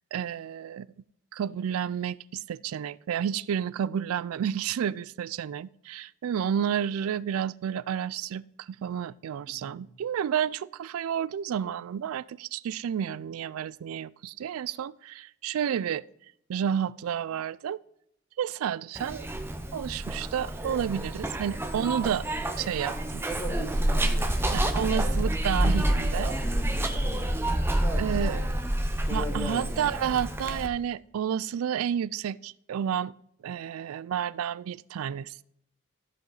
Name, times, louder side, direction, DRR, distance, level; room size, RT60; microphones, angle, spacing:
voice 1, 0.1-0.9 1.3-16.0 16.5-17.8 18.4-19.3 19.7-22.3 22.6-23.2 24.5-26.3 28.0-28.4 29.1-33.1 33.4-35.4, right 8 dB, 80° right, 0.3 m, -31 dB
voice 2, 9.5-9.8 23.2-25.2 26.1-27.3 27.6-28.4 29.1-29.9, equal, 5° left, 2.1 m, -38 dB
Zipper (clothing), 19.0-30.7, right 1 dB, 10° right, 0.7 m, -28 dB
14.5 x 5.1 x 3.9 m
head